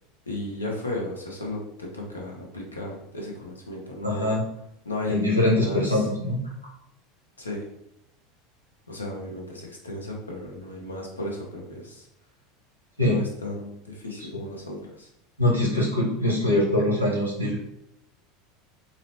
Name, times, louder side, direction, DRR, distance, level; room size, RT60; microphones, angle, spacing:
voice 1, 0.3-4.4 4.8-5.3 5.5-6.1 7.4-7.7 8.9-12.1 13.0-15.1, left 1 dB, 80° left, -1 dB, 0.7 m, -35 dB
voice 2, 4.0-4.5 5.1-6.4 13.0-13.2 15.4-17.6, left 1 dB, 90° right, -4 dB, 1.0 m, -23 dB
3.9 x 2.1 x 2.8 m, 0.80 s
figure-of-eight pair, 75°, 0 cm